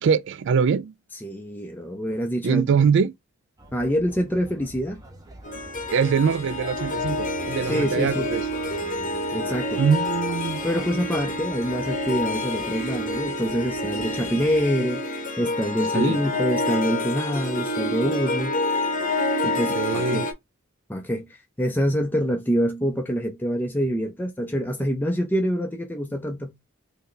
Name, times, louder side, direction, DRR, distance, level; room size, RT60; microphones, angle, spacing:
voice 1, 0.0-0.9 2.4-3.1 5.9-8.4 9.8-10.6 15.9-16.2 19.7-20.3, right 6 dB, 60° right, 0.4 m, -23 dB
voice 2, 1.2-2.8 3.7-5.0 7.6-8.3 9.3-9.8 10.6-15.0 15.4-18.6 19.4-20.2 20.9-26.5, equal, 10° left, 0.5 m, -26 dB
sound 1, 3.6-14.6, right 1 dB, 15° right, 0.8 m, -45 dB
Harp, 5.4-20.3, left 1 dB, 40° left, 0.9 m, -28 dB
3.2 x 2.8 x 3.8 m
head